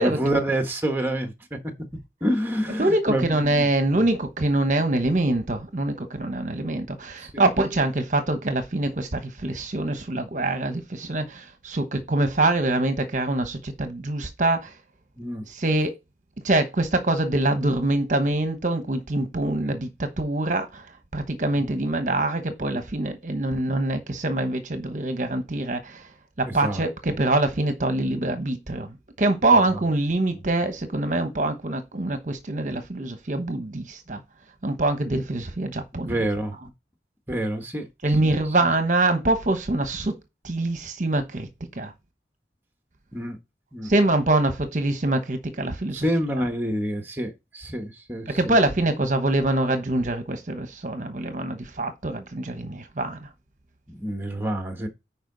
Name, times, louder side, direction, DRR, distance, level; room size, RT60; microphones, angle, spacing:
voice 1, 0.0-1.6 2.2-3.7 3.9-4.1 6.5-6.6 7.2-7.5 15.2-15.4 21.6-21.7 26.4-27.1 30.3-30.4 35.9-36.6 37.3-38.3 38.6-38.7 43.1-43.4 43.7-43.9 45.9-48.6 53.9-54.9, right 1 dB, 10° right, 1.3 m, -28 dB
voice 2, 2.8-14.7 15.5-15.9 16.4-20.9 21.1-26.1 26.4-28.9 29.2-34.2 34.6-36.1 38.0-40.1 40.4-41.9 43.8-46.1 48.3-53.3, right 2 dB, 45° right, 1.1 m, -24 dB
10.0 x 4.7 x 4.0 m
head